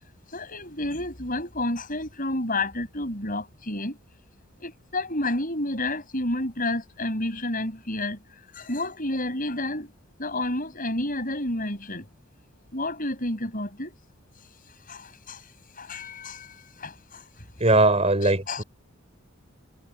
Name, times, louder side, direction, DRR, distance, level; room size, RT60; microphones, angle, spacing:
voice 1, 0.3-4.0 4.6-8.2 8.5-9.9 10.2-12.1 12.7-13.9 14.9-15.5 15.8-17.2 17.7-17.8 18.2-18.6, left 1 dB, 40° left, 7.1 m, -30 dB
voice 2, 17.6-18.6, right 2 dB, 30° right, 6.3 m, -20 dB
head